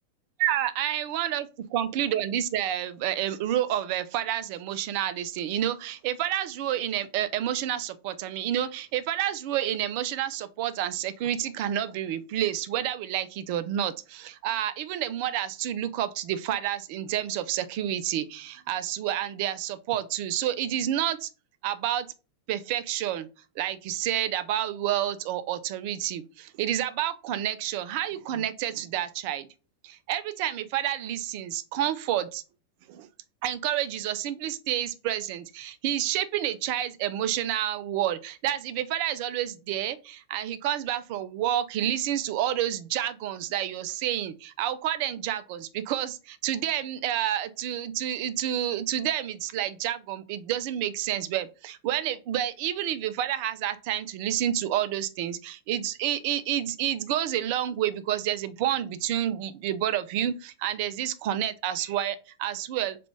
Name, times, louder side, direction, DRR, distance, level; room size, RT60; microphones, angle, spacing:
voice 1, 0.4-21.3 21.6-22.1 22.5-23.3 23.6-29.5 29.8-32.4 32.9-33.1 33.4-63.0, right 11 dB, 45° right, 0.4 m, -29 dB
3.9 x 2.3 x 3.1 m
figure-of-eight pair, 90°, 0 cm